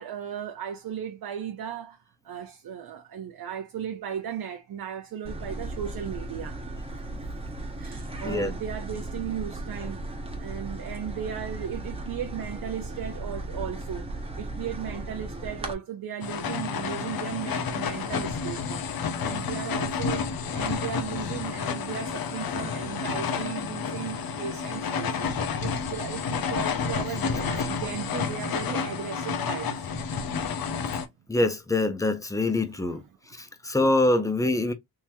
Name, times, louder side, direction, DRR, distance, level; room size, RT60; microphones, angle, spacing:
voice 1, 0.0-2.0 2.2-6.6 7.8-10.0 10.4-14.1 14.4-20.3 20.5-25.3 25.6-30.0 30.4-30.8 32.7-33.0, right 9 dB, 60° right, 0.7 m, -36 dB
sound 1, 5.2-15.7, right 2 dB, 15° right, 1.0 m, -36 dB
sound 2, 16.2-31.1, left 5 dB, 60° left, 0.7 m, -30 dB
voice 2, 31.3-33.0 33.3-34.7, left 2 dB, 10° left, 0.6 m, -24 dB
3.6 x 3.0 x 2.7 m
wide cardioid pair, 130°, 39 cm